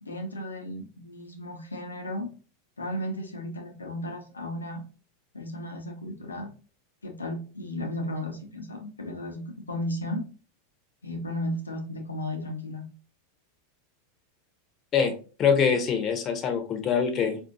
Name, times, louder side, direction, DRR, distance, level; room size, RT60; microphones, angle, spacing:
voice 1, 0.0-2.3 2.8-4.8 5.3-6.5 7.0-10.3 11.0-12.8, left 1 dB, 90° left, 4 dB, 0.8 m, -34 dB
voice 2, 15.4-17.4, left 6 dB, 35° left, 6 dB, 0.8 m, -24 dB
4.2 x 2.6 x 2.5 m, 0.37 s
hypercardioid pair, 90°, 0 cm